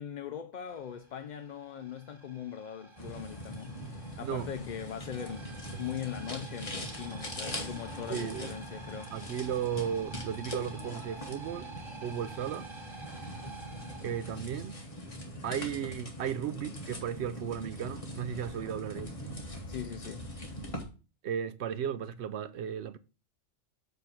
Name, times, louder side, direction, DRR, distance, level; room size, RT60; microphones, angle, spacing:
voice 1, 0.0-3.8 4.2-9.1 19.7-20.3, left 8 dB, 55° left, 0.5 m, -40 dB
sound 1, 0.7-15.2, right 3 dB, 25° right, 1.1 m, -50 dB
sound 2, 3.0-20.8, equal, 30° left, 1.5 m, -42 dB
voice 2, 8.1-8.6 9.1-11.7 12.0-12.7 14.0-14.8 15.4-19.1 21.2-23.0, right 9 dB, 70° right, 0.8 m, -35 dB
7.9 x 3.4 x 5.8 m
omnidirectional pair, 1.3 m